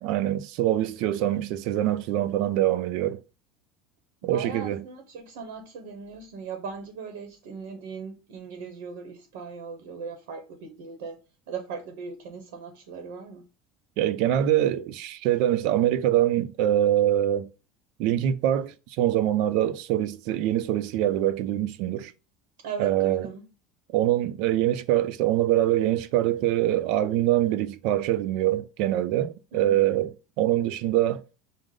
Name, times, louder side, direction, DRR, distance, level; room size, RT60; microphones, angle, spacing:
voice 1, 0.0-3.2 4.2-4.8 14.0-17.5 18.0-22.1 22.8-23.3 23.9-30.1 30.4-31.2, right 12 dB, 60° right, 0.4 m, -24 dB
voice 2, 4.2-11.2 11.5-13.4 22.6-23.4 29.5-29.8, right 5 dB, 85° right, 0.8 m, -38 dB
4.9 x 2.0 x 3.7 m
supercardioid pair, 145°, 0 cm